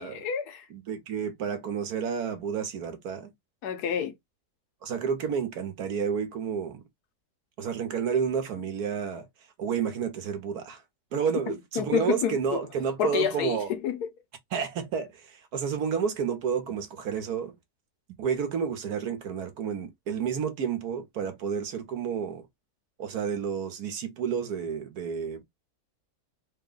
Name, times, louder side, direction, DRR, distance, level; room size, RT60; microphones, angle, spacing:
voice 1, 0.0-0.7 3.6-4.1 11.8-12.6 13.0-14.1, left 8 dB, 80° left, 1.4 m, -29 dB
voice 2, 0.7-3.3 4.8-6.8 7.6-9.2 9.6-10.8 11.1-13.7 14.5-17.5 18.2-22.5 23.0-25.4, right 7 dB, 75° right, 1.4 m, -30 dB
3.7 x 2.2 x 3.8 m
omnidirectional pair, 1.7 m